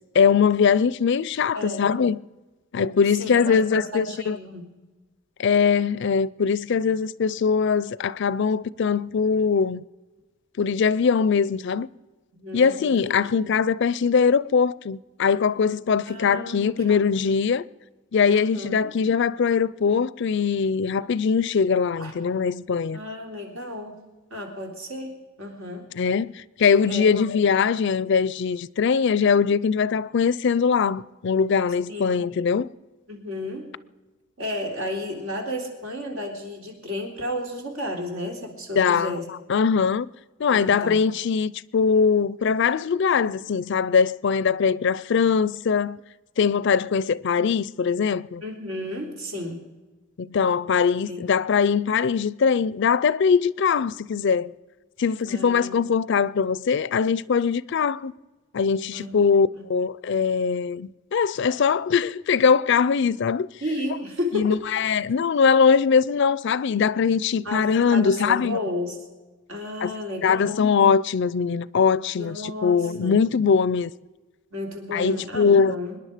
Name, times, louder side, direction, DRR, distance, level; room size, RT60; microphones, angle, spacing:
voice 1, 0.1-2.2 2.7-4.4 5.4-9.8 10.6-11.9 12.5-17.6 18.1-23.0 26.0-32.7 38.8-39.1 39.5-40.1 40.4-46.0 46.4-48.4 50.2-54.5 55.0-58.1 58.5-63.5 64.3-68.6 69.8-69.9 70.2-73.9 74.9-75.8, left 6 dB, 60° left, 0.4 m, -21 dB
voice 2, 1.5-1.9 3.2-4.7 12.3-13.5 16.0-17.1 18.3-18.9 22.0-22.1 22.9-23.9 24.3-25.9 26.9-27.2 31.9-32.2 33.1-33.7 34.4-39.2 40.5-41.0 48.4-49.6 51.0-51.2 55.3-55.9 58.9-59.1 59.5-59.6 63.6-64.8 67.4-69.0 69.5-70.7 72.2-73.2 74.5-76.0, left 1 dB, 85° right, 3.3 m, -33 dB
25.0 x 10.5 x 5.0 m
head